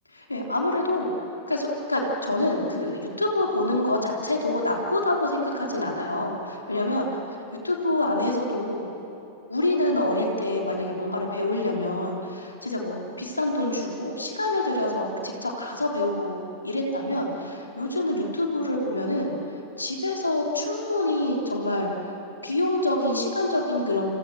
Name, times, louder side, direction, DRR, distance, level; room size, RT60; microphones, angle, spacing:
voice 1, 0.1-1.1 1.5-7.1 7.6-9.0 9.5-19.3 19.8-21.9 22.4-24.1, left 1 dB, 80° left, 0 dB, 3.5 m, -26 dB
29.5 x 26.5 x 6.3 m, 2.8 s
figure-of-eight pair, 90°, 0 cm